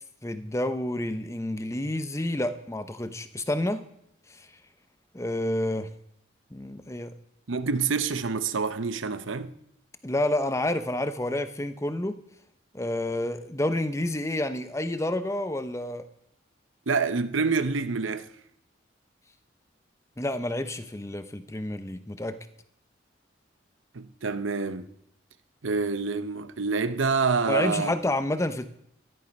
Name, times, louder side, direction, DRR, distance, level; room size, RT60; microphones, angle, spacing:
voice 1, 0.2-3.8 5.1-5.9 6.5-7.1 10.0-12.2 12.7-16.0 20.2-22.4 27.5-28.7, left 1 dB, 15° left, 0.8 m, -29 dB
voice 2, 7.5-9.5 16.9-18.3 23.9-24.9 25.6-27.9, right 4 dB, 90° right, 0.8 m, -27 dB
13.5 x 11.0 x 5.4 m
head